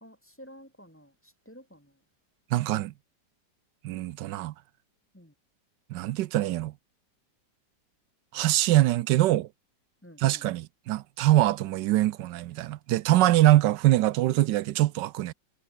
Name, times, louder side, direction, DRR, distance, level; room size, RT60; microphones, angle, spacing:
voice 1, 0.0-1.9 5.1-5.3 10.0-10.5, equal, 5° left, 2.6 m, -51 dB
voice 2, 2.5-2.9 3.8-4.5 5.9-6.7 8.3-9.5 10.2-15.3, right 15 dB, 85° right, 1.3 m, -23 dB
omnidirectional pair, 1.8 m